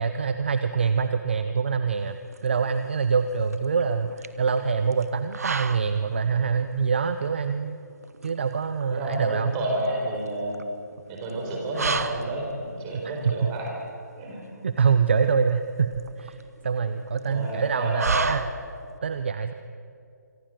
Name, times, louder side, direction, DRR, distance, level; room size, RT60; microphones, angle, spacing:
voice 1, 0.0-2.2 2.4-7.8 8.2-9.5 13.0-13.5 14.6-16.4 16.6-18.4 19.0-19.5, right 5 dB, 35° right, 10 dB, 0.8 m, -25 dB
sound 1, 1.9-19.0, right 5 dB, 55° right, 1.4 m, -35 dB
voice 2, 8.9-10.6 11.1-13.7 14.2-14.4 17.3-18.2, right 1 dB, 15° right, -2 dB, 4.4 m, -30 dB
25.5 x 25.0 x 7.8 m, 2.5 s
hypercardioid pair, 180°, 10 cm